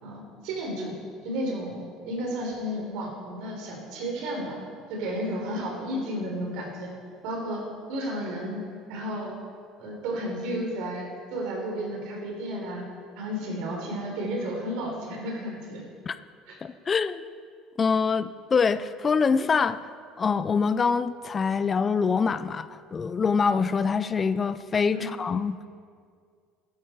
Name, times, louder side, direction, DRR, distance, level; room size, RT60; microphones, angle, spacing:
voice 1, 0.0-1.0 1.2-4.6 4.9-6.9 7.2-7.6 7.9-8.6 8.9-9.4 9.8-12.8 13.2-15.8 16.5-16.6 24.9-25.1, equal, 75° right, 0 dB, 4.0 m, -32 dB
voice 2, 16.6-17.2 17.8-19.8 20.2-25.6, left 5 dB, 30° left, 14 dB, 0.5 m, -25 dB
15.0 x 12.0 x 4.7 m, 2.2 s
supercardioid pair, 115°, 0 cm